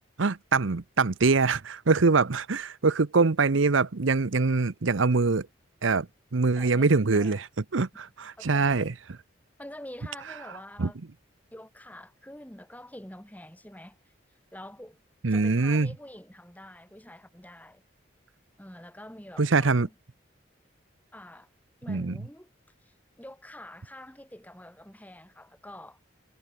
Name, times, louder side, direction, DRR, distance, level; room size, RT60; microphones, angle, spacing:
voice 1, 0.2-5.5 5.8-6.1 6.3-7.5 7.7-8.9 10.8-10.9 15.2-15.9 19.4-19.9 21.9-22.2, right 4 dB, 80° right, 0.8 m, -23 dB
voice 2, 6.6-7.4 8.4-8.9 9.6-11.0 11.5-14.1 14.5-15.0 15.3-17.8 18.6-19.9 21.1-21.5 21.8-22.5 22.8-26.0, left 1 dB, 10° left, 2.9 m, -46 dB
head